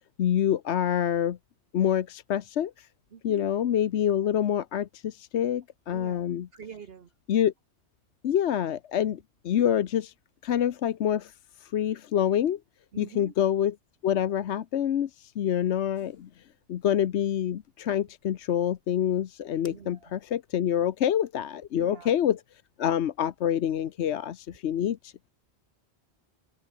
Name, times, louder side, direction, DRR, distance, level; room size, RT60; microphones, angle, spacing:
voice 1, 0.2-1.4 1.7-2.9 3.2-6.5 7.3-7.5 8.2-9.2 9.4-10.1 10.4-11.3 11.6-12.6 13.0-13.8 14.0-16.3 16.7-22.4 22.8-25.1, left 10 dB, 80° left, 1.1 m, -26 dB
voice 2, 3.1-3.5 5.9-7.1 12.9-13.3 19.7-20.1 21.7-22.1, right 7 dB, 60° right, 1.3 m, -45 dB
sound 1, 15.9-21.2, left 1 dB, 60° left, 6.7 m, -65 dB
omnidirectional pair, 1.1 m